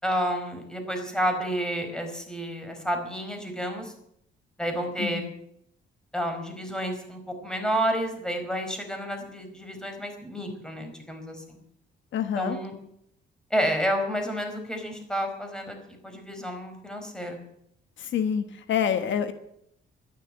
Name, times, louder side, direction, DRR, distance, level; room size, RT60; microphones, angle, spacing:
voice 1, 0.0-3.9 4.6-5.2 6.1-11.6 12.4-12.7 13.5-15.8 16.0-17.4, equal, 5° left, 4 dB, 4.7 m, -30 dB
voice 2, 5.0-5.3 12.1-12.6 18.0-19.3, left 8 dB, 70° left, 10 dB, 1.3 m, -27 dB
12.0 x 11.0 x 9.8 m, 0.73 s
cardioid pair, 90°, 20 cm